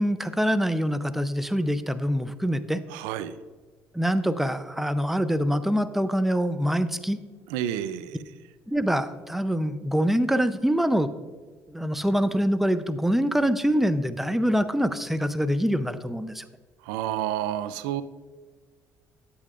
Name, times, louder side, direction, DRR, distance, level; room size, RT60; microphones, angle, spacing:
voice 1, 0.0-2.8 3.9-7.2 8.7-11.1 11.7-16.4, equal, 5° right, 11 dB, 0.5 m, -25 dB
voice 2, 2.9-3.4 7.5-8.2 16.8-18.0, right 11 dB, 80° right, 14 dB, 0.4 m, -30 dB
9.9 x 8.4 x 2.4 m, 1.4 s
hypercardioid pair, 65°, 7 cm